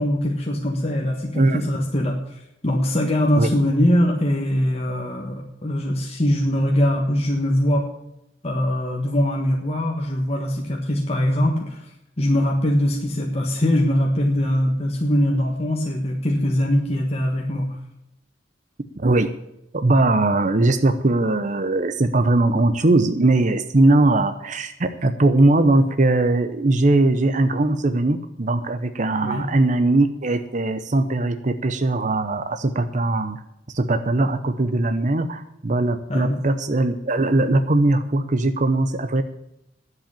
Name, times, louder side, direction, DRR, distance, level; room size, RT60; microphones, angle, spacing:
voice 1, 0.0-7.8 8.4-11.9 12.2-17.8 29.2-29.5 36.1-36.4, left 1 dB, 35° left, 0 dB, 1.4 m, -22 dB
voice 2, 19.0-19.3 19.7-33.4 33.7-39.2, right 2 dB, 40° right, 9 dB, 0.8 m, -20 dB
10.5 x 7.9 x 8.8 m, 0.84 s
head